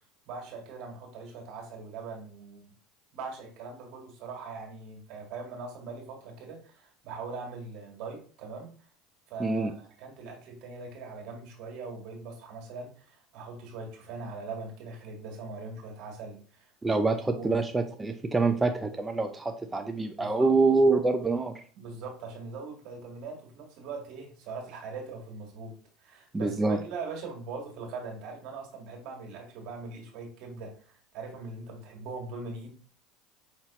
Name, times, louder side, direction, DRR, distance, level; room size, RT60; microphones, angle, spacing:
voice 1, 0.3-2.7 3.1-8.7 9.3-17.0 17.3-17.5 20.2-20.5 21.7-32.7, right 4 dB, 60° right, 1 dB, 1.7 m, -41 dB
voice 2, 9.4-9.7 16.8-21.6 26.3-26.8, right 3 dB, 15° right, 5 dB, 0.5 m, -26 dB
5.5 x 2.9 x 2.9 m, 0.43 s
hypercardioid pair, 90°, 0 cm